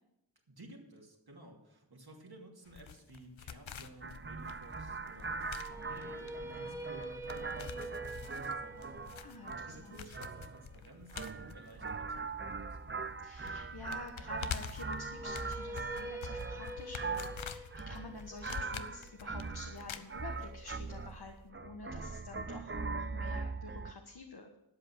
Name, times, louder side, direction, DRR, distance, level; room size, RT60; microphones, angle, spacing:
voice 1, 0.5-13.0, right 1 dB, 55° right, 0 dB, 2.7 m, -54 dB
sound 1, 2.7-12.8 13.0-13.1 13.5-20.7 21.0-21.1, left 7 dB, 90° left, 0.7 m, -47 dB
sound 2, 4.0-23.9, right 4 dB, 25° right, 0.6 m, -41 dB
sound 3, 5.5-11.6 14.9-20.9, right 1 dB, 5° right, 1.1 m, -47 dB
voice 2, 9.2-10.0 13.2-24.6, left 3 dB, 55° left, 3 dB, 1.4 m, -49 dB
12.5 x 7.9 x 6.2 m, 0.86 s
wide cardioid pair, 60°, 45 cm